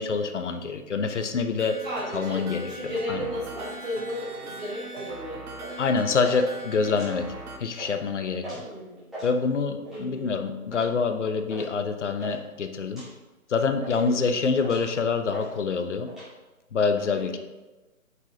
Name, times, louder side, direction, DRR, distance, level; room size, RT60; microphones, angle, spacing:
voice 1, 0.0-1.8 2.1-2.7 3.1-3.3 5.8-7.3 7.6-8.6 9.2-13.0 13.5-16.1 16.7-17.4, left 5 dB, 55° left, 7 dB, 0.7 m, -26 dB
voice 2, 1.5-5.5 8.4-9.1 9.8-10.3 13.9-14.6 17.1-17.4, equal, 30° right, -12 dB, 2.1 m, -35 dB
sound 1, 1.6-7.6, right 2 dB, 90° right, 1.0 m, -40 dB
sound 2, 4.9-5.1 5.6-5.9 6.2-6.4 6.8-7.4 7.7-7.9 8.4-8.7 9.0-9.3 9.8-10.1 10.7-10.9 11.5-11.7 11.9-12.4 12.9-13.1 13.5-14.1 14.6-14.9 15.3-15.5 15.8-16.3, right 1 dB, ahead, 1.0 m, -40 dB
8.2 x 4.9 x 2.8 m, 1.1 s
hypercardioid pair, 155°, 43 cm